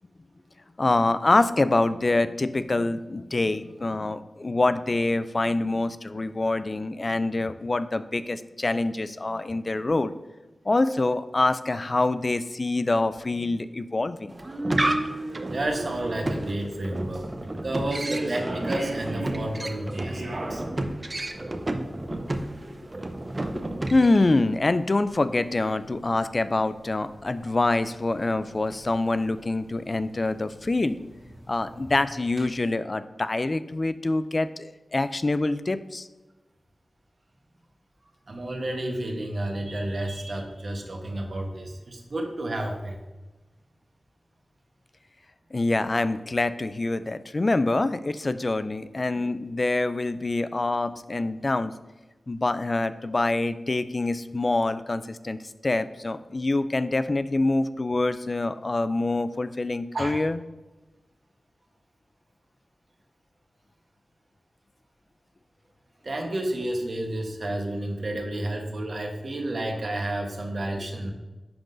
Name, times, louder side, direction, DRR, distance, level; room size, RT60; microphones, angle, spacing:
voice 1, 0.8-10.1 10.7-14.3 23.5-23.6 23.9-31.0 31.5-36.1 45.5-51.7 52.3-60.4, left 2 dB, 45° left, 13 dB, 0.3 m, -25 dB
sound 1, 14.3-24.3, right 1 dB, 40° right, 0.7 m, -31 dB
voice 2, 15.5-20.6 38.0-43.0 49.1-49.3 59.9-60.2 66.0-71.1, right 1 dB, 65° right, 2 dB, 1.0 m, -31 dB
sound 2, 15.6-32.4, right 1 dB, 80° right, 1.8 m, -41 dB
10.5 x 3.8 x 2.6 m, 1.1 s
cardioid pair, 45°, 0 cm